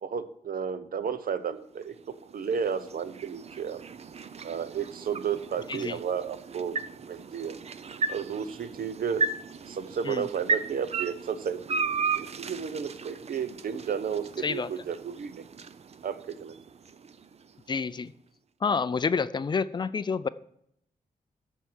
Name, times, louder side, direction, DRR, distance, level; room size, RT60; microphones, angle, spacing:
voice 1, 0.0-1.9 2.3-3.8 4.4-6.8 7.1-7.6 8.1-9.2 9.7-15.4 16.0-16.6, right 7 dB, 70° right, 12 dB, 0.8 m, -33 dB
sound 1, 1.6-17.8, right 4 dB, 45° right, 0.5 m, -36 dB
voice 2, 17.7-18.1 18.6-20.3, left 5 dB, 30° left, 15 dB, 0.4 m, -28 dB
13.0 x 4.6 x 7.3 m, 0.74 s
wide cardioid pair, 160°, 15 cm